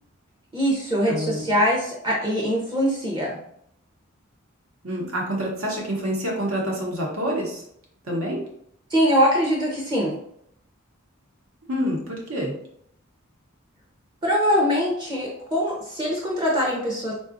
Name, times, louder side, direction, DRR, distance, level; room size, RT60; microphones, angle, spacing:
voice 1, 0.5-3.4 8.9-10.2 14.2-17.1, equal, 20° right, -4 dB, 0.5 m, -22 dB
voice 2, 1.1-1.5 4.8-7.6 8.1-8.4 11.7-12.6, equal, 80° right, -1 dB, 0.9 m, -27 dB
3.7 x 2.3 x 2.5 m, 0.71 s
head